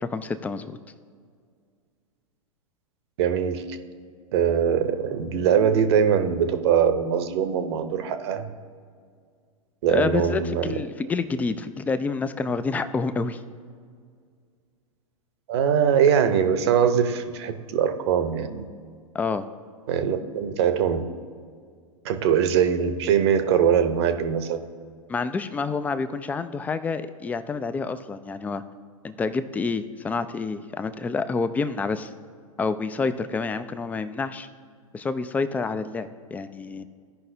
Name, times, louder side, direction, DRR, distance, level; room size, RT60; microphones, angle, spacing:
voice 1, 0.0-0.8 9.9-13.4 19.1-19.5 25.1-28.6 29.0-32.1 32.6-34.5 34.9-36.8, left 4 dB, 10° left, 12 dB, 0.3 m, -28 dB
voice 2, 3.2-3.8 4.3-8.5 9.8-10.7 15.5-18.6 19.9-21.0 22.0-24.6, right 8 dB, 50° right, 9 dB, 0.8 m, -22 dB
15.5 x 5.5 x 2.7 m, 2.1 s
figure-of-eight pair, 100°, 18 cm